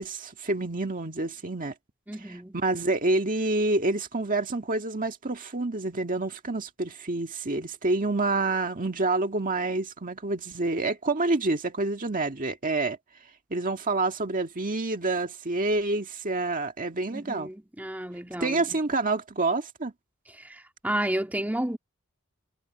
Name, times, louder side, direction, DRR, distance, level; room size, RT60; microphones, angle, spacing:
voice 1, 0.0-1.7 2.2-13.0 13.5-17.5 18.4-19.9, right 2 dB, 40° right, 1.8 m, -28 dB
voice 2, 2.1-2.6 17.1-18.8 20.4-21.8, right 1 dB, 10° right, 1.8 m, -32 dB
head